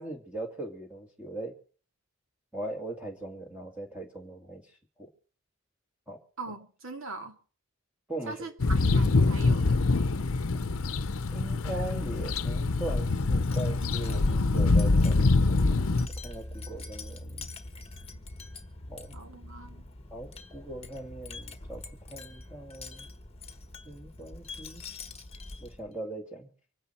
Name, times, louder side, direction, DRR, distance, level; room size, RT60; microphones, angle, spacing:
voice 1, 0.0-1.5 2.5-4.6 5.0-5.1 6.1-6.2 8.1-8.5 11.3-15.9 16.2-17.5 18.9-19.2 20.1-23.1 23.8-24.8 25.6-26.5, right 1 dB, 5° right, 2.3 m, -40 dB
voice 2, 6.4-7.4 8.3-9.8 19.1-19.8, right 2 dB, 65° right, 2.4 m, -41 dB
sound 1, 8.6-16.1, left 3 dB, 70° left, 0.8 m, -25 dB
Wind chime, 12.2-25.9, left 2 dB, 25° left, 1.4 m, -44 dB
25.0 x 10.0 x 4.4 m
head